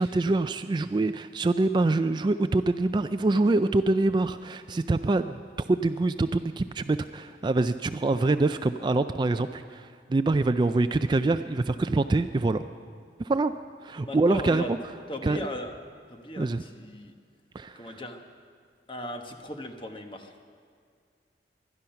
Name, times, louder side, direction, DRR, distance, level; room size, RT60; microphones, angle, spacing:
voice 1, 0.0-5.4 5.7-12.6 13.2-13.5 13.8-14.8 15.2-15.4 16.4-16.6 17.5-18.0, right 2 dB, 25° right, 10 dB, 0.3 m, -25 dB
voice 2, 14.0-14.7 15.1-15.7 16.1-17.1 17.7-18.2 18.9-20.3, left 1 dB, 30° left, 5 dB, 1.1 m, -37 dB
20.5 x 12.0 x 5.7 m, 2.2 s
head